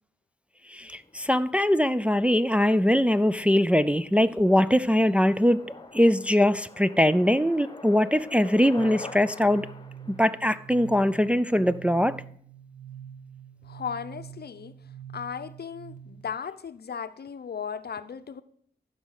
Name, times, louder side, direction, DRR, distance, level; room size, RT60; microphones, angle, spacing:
voice 1, 0.7-5.6 5.9-9.7 10.2-12.2, equal, 5° right, 0.4 m, -22 dB
sound 1, 1.0-12.0, left 3 dB, 25° left, 1.0 m, -47 dB
sound 2, 8.8-16.3, right 8 dB, 45° right, 1.1 m, -45 dB
voice 2, 13.6-14.8 15.1-18.4, left 7 dB, 60° left, 0.6 m, -36 dB
14.5 x 5.1 x 6.5 m
wide cardioid pair, 80°, 18 cm